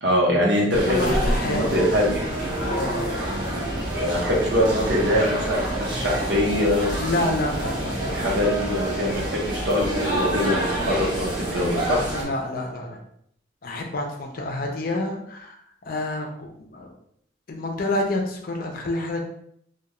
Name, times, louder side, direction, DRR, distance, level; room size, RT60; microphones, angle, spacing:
voice 1, 0.0-2.2 3.9-7.0 8.1-12.0, left 1 dB, 65° right, -3 dB, 0.9 m, -23 dB
sound 1, 0.7-12.2, right 1 dB, 25° right, 0.7 m, -27 dB
voice 2, 0.9-1.8 2.6-3.0 7.0-8.2 12.1-13.0 13.6-15.6 15.8-16.9 17.5-19.2, left 2 dB, 50° left, 2 dB, 0.5 m, -28 dB
sound 2, 1.9-9.5, right 3 dB, 85° right, 0.5 m, -37 dB
2.3 x 2.3 x 2.9 m, 0.68 s
head